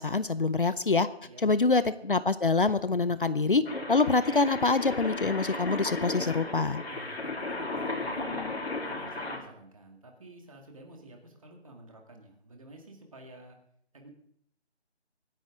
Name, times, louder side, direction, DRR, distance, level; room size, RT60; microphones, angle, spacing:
voice 1, 0.0-1.1 1.4-3.6 3.9-6.8, left 3 dB, 50° left, 15 dB, 0.6 m, -25 dB
voice 2, 1.2-1.7 6.9-8.6 8.8-13.6 13.9-14.1, right 2 dB, 30° right, 2 dB, 2.2 m, -50 dB
sound 1, 3.6-9.4, left 2 dB, 65° left, 3.7 m, -35 dB
24.5 x 10.0 x 3.7 m, 0.66 s
figure-of-eight pair, 175°, 34 cm